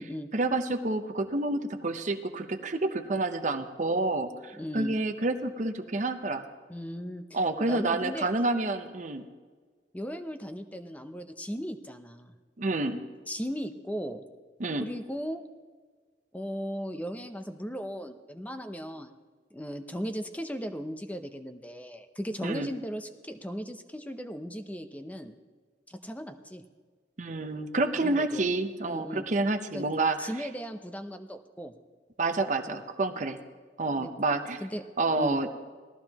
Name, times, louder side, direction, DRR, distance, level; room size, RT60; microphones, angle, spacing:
voice 1, 0.3-6.4 7.3-9.2 12.6-13.0 14.6-14.9 22.4-22.7 27.2-30.3 32.2-33.4 33.8-34.6 35.0-35.5, right 2 dB, 45° right, 7 dB, 0.7 m, -29 dB
voice 2, 4.6-5.0 6.7-7.4 7.7-8.3 9.9-12.3 13.3-14.2 14.8-15.4 16.3-19.1 19.5-25.3 25.9-26.6 27.9-28.4 28.8-29.3 29.7-29.9 30.2-31.7 32.7-32.8 33.1-33.3 34.0-34.1 34.6-34.8 35.2-35.4, equal, 10° left, 7 dB, 0.6 m, -37 dB
18.5 x 14.0 x 2.9 m, 1.5 s
head